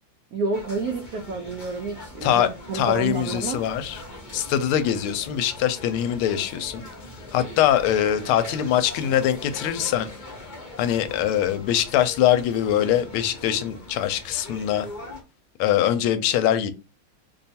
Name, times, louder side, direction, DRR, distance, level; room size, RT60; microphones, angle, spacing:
voice 1, 0.3-3.6, right 3 dB, 90° right, 0.8 m, -29 dB
sound 1, 0.5-15.2, left 1 dB, 40° left, 0.7 m, -41 dB
voice 2, 2.2-4.0 4.3-6.8 7.3-10.1 10.8-14.9 15.6-16.7, left 11 dB, 85° left, 1.4 m, -23 dB
3.3 x 2.3 x 4.1 m
omnidirectional pair, 2.3 m